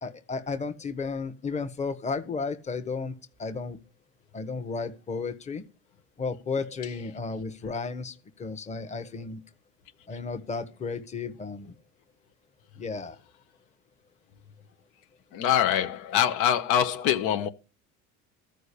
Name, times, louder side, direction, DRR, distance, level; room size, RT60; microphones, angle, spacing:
voice 1, 0.0-3.8 4.3-5.6 6.2-9.4 10.1-11.7 12.8-13.2, left 4 dB, 25° left, 1.3 m, -33 dB
voice 2, 15.3-17.5, left 10 dB, 85° left, 1.3 m, -24 dB
13.5 x 5.3 x 8.4 m
cardioid pair, 125°, 30 cm